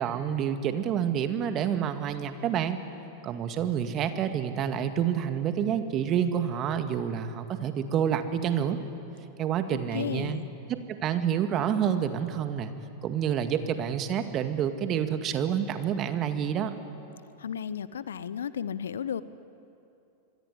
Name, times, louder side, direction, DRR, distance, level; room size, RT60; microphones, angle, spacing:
voice 1, 0.0-2.8 3.2-8.8 9.4-10.4 10.7-12.7 13.0-16.8, right 8 dB, 35° right, 8 dB, 2.0 m, -28 dB
voice 2, 9.7-10.5 17.4-19.2, left 8 dB, 70° left, 16 dB, 0.8 m, -34 dB
26.0 x 22.5 x 10.0 m, 2.8 s
figure-of-eight pair, 90°, 0 cm